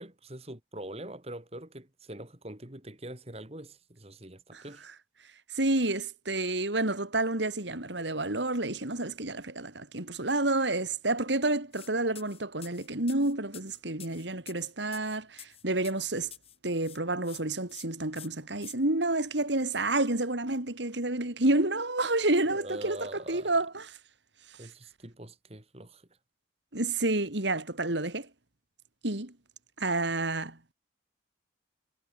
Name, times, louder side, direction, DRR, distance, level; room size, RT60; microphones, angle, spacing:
voice 1, 0.0-4.8 22.5-23.6 24.6-26.1, right 1 dB, 35° right, 2.7 m, -43 dB
voice 2, 5.5-16.3 16.6-23.0 23.3-23.8 26.7-28.3 29.0-29.3 29.8-30.7, right 2 dB, 75° right, 3.0 m, -29 dB
sound 1, 11.7-11.9 12.1-16.6 16.8-17.4 17.7-17.8 18.1-18.7, left 10 dB, 30° left, 5.6 m, -48 dB
head